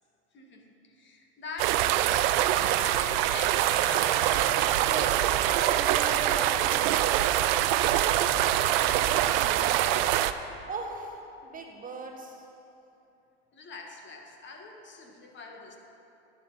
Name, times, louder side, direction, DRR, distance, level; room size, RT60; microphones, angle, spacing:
voice 1, 0.3-2.3 2.8-4.5 8.6-10.4 13.5-15.8, left 3 dB, 35° left, 2 dB, 1.8 m, -44 dB
sound 1, 1.6-10.3, right 12 dB, 65° right, 0.6 m, -24 dB
voice 2, 4.8-7.2 10.7-12.4, right 3 dB, 25° right, 2 dB, 1.2 m, -38 dB
11.5 x 10.5 x 4.1 m, 2.8 s
hypercardioid pair, 90°, 31 cm